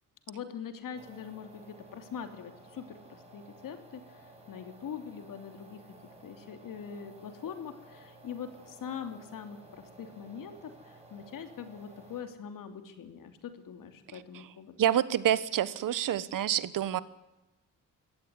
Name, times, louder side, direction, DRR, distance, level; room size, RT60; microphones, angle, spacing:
voice 1, 0.3-5.8 6.2-14.8, left 7 dB, 80° left, 8 dB, 3.0 m, -43 dB
sound 1, 0.9-12.2, right 1 dB, 20° right, 6.0 m, -54 dB
voice 2, 14.8-17.0, right 11 dB, 75° right, 16 dB, 1.2 m, -27 dB
22.5 x 17.0 x 9.8 m, 0.98 s
wide cardioid pair, 145°, 33 cm